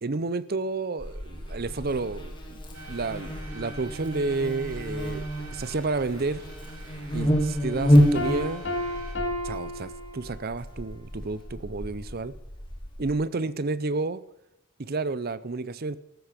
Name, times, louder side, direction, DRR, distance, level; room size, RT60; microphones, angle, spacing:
voice 1, 0.0-2.6 2.9-6.4 7.1-8.6 9.4-12.3 13.0-14.2 14.8-16.0, right 3 dB, 45° right, 17 dB, 0.6 m, -30 dB
Buzz, 1.0-13.1, equal, 20° left, 2.1 m, -29 dB
sound 1, 2.7-9.2, right 3 dB, 85° right, 2.6 m, -47 dB
Piano, 8.1-10.7, left 1 dB, 55° left, 2.7 m, -32 dB
14.0 x 13.0 x 5.1 m, 0.83 s
head